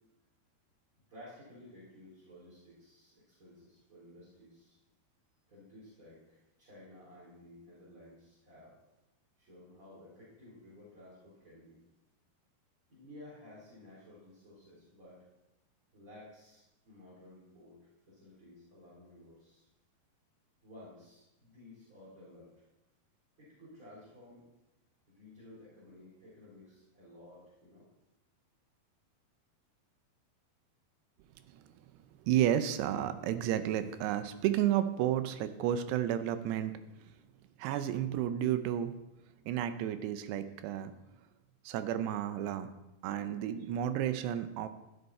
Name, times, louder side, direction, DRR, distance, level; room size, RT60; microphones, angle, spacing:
voice 1, 1.1-4.8 5.5-8.8 9.4-11.8 12.9-15.2 15.9-17.8 18.1-19.7 20.6-22.5 23.4-24.4 25.1-27.9, left 1 dB, 20° right, -9 dB, 3.6 m, -54 dB
voice 2, 32.3-36.7 37.6-39.0 39.5-40.9 41.7-42.7 43.0-44.7, right 11 dB, 85° right, 11 dB, 2.8 m, -31 dB
15.0 x 7.9 x 4.2 m, 0.96 s
omnidirectional pair, 4.8 m